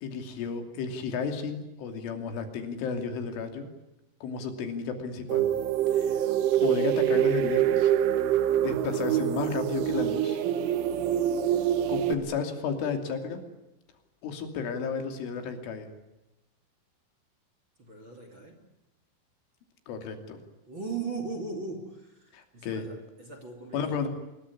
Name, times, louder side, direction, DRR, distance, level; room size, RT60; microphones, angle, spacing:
voice 1, 0.0-3.7 4.2-5.5 5.9-6.4 6.6-7.9 8.6-10.4 11.9-13.4 14.2-15.9 19.9-20.4 22.3-22.9 23.7-24.1, left 5 dB, 90° left, 6 dB, 5.3 m, -33 dB
sound 1, 5.3-12.1, right 10 dB, 90° right, 3.9 m, -25 dB
voice 2, 17.8-18.6 20.7-24.0, right 4 dB, 30° right, 5 dB, 2.7 m, -38 dB
25.0 x 22.0 x 9.8 m, 0.95 s
omnidirectional pair, 5.4 m